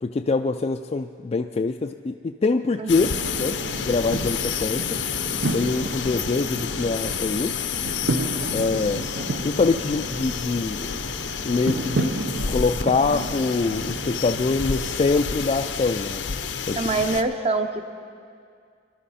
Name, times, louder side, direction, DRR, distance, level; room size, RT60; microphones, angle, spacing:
voice 1, 0.0-3.1 3.4-5.0 5.5-7.6 8.5-9.1 9.4-11.0 11.4-12.1 12.5-16.2 16.7-16.9, left 3 dB, 35° left, 4 dB, 0.3 m, -24 dB
voice 2, 2.8-3.1 16.8-17.9, right 3 dB, 35° right, 7 dB, 0.8 m, -25 dB
sound 1, 2.9-17.2, left 7 dB, 80° left, 0.7 m, -30 dB
sound 2, 3.0-15.0, right 2 dB, 75° right, 0.6 m, -32 dB
24.0 x 12.0 x 4.2 m, 2.3 s
head